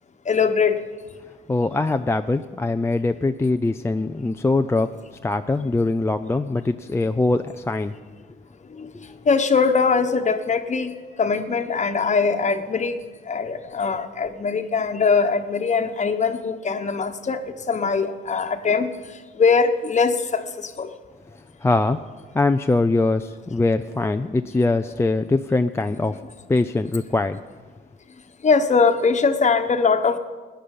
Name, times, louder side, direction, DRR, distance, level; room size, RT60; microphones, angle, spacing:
voice 1, 0.3-0.8 8.8-8.9 9.3-12.9 13.3-17.4 17.7-18.9 19.4-20.9 28.4-30.2, left 5 dB, 35° left, 8 dB, 1.2 m, -21 dB
voice 2, 1.5-7.9 21.6-22.0 22.3-26.2 26.5-27.4, left 2 dB, 15° left, 7 dB, 0.4 m, -22 dB
18.5 x 10.5 x 5.5 m, 1.4 s
cardioid pair, 90°, 20 cm